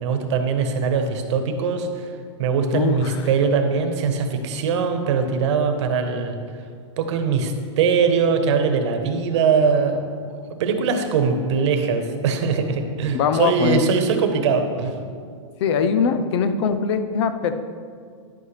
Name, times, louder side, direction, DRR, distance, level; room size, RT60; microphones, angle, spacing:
voice 1, 0.0-2.1 2.4-6.4 7.0-15.0, right 5 dB, 60° right, 6 dB, 1.2 m, -21 dB
voice 2, 2.7-3.2 13.1-13.9 15.6-17.5, left 6 dB, 60° left, 10 dB, 0.7 m, -21 dB
10.5 x 8.4 x 3.3 m, 2.1 s
hypercardioid pair, 135°, 16 cm